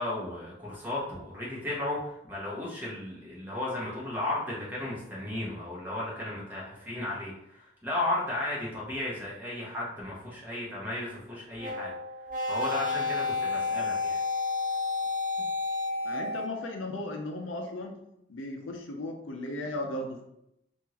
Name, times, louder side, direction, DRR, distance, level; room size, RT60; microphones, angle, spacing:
voice 1, 0.0-11.9 12.4-14.2, left 1 dB, 10° right, -6 dB, 1.1 m, -34 dB
sound 1, 11.6-16.7, left 3 dB, 45° right, 0.6 m, -31 dB
voice 2, 16.0-18.0 18.3-20.2, left 1 dB, 90° left, 3 dB, 0.6 m, -36 dB
3.6 x 2.5 x 2.9 m, 0.81 s
head